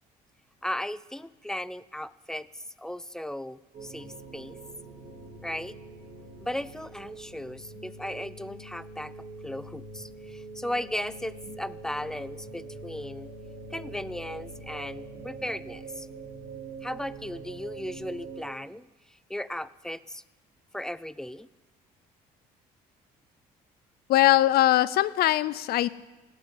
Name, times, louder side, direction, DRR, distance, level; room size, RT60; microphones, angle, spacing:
voice 1, 0.6-4.6 5.4-5.7 6.4-9.1 9.4-13.3 13.7-16.1 16.8-18.9 19.3-20.2 20.7-21.5, left 1 dB, 5° left, 17 dB, 0.3 m, -36 dB
sound 1, 3.7-18.4, right 3 dB, 50° right, 3.5 m, -44 dB
voice 2, 24.1-25.9, left 14 dB, 65° left, 18 dB, 0.5 m, -21 dB
17.0 x 6.2 x 8.7 m, 1.2 s
cardioid pair, 110°, 17 cm